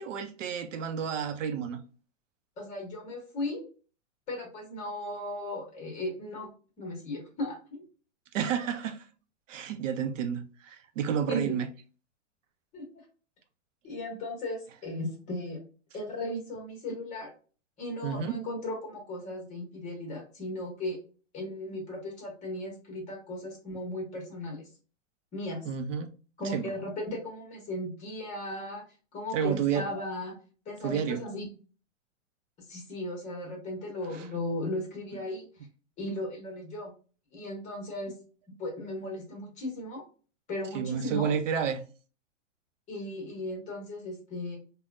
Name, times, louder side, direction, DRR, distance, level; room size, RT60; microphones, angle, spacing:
voice 1, 0.0-1.8 8.3-9.0 9.5-11.7 18.0-18.4 25.7-26.1 26.4-26.7 29.3-29.8 30.8-31.2 34.1-34.2 40.7-41.8, right 7 dB, 80° right, 0.6 m, -30 dB
voice 2, 2.6-3.6 4.3-6.5 6.8-7.8 11.3-11.6 12.7-12.8 13.8-15.6 15.9-17.3 17.8-21.0 21.3-24.7 25.3-25.6 26.4-28.8 29.1-30.4 30.7-31.5 32.7-35.5 36.0-36.9 37.3-38.1 38.6-40.0 40.5-41.3 42.9-44.6, left 1 dB, 20° left, 1.0 m, -36 dB
3.4 x 2.2 x 2.5 m
hypercardioid pair, 150°, 37 cm